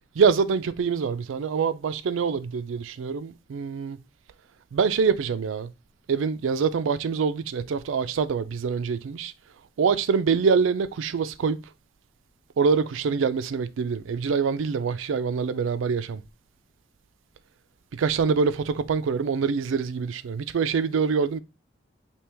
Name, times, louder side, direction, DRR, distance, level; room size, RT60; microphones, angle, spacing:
voice 1, 0.2-4.0 4.7-5.7 6.1-9.3 9.8-11.6 12.6-16.2 17.9-21.4, right 5 dB, 80° right, 0.4 m, -25 dB
4.5 x 2.9 x 3.3 m
head